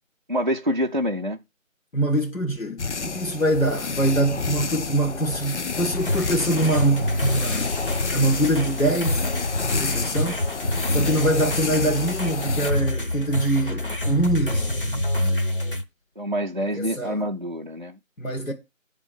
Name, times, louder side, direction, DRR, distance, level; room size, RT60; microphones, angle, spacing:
voice 1, 0.3-1.4 16.2-18.0, equal, 40° right, 0.5 m, -26 dB
voice 2, 1.9-7.7 8.1-9.3 9.7-10.4 10.9-15.0 16.7-17.3 18.2-18.5, right 1 dB, 85° left, 1.8 m, -24 dB
sound 1, 2.8-12.7, left 4 dB, 60° left, 0.5 m, -30 dB
sound 2, 5.9-15.8, left 1 dB, 40° left, 0.9 m, -27 dB
9.0 x 3.6 x 6.9 m
figure-of-eight pair, 170°, 40 cm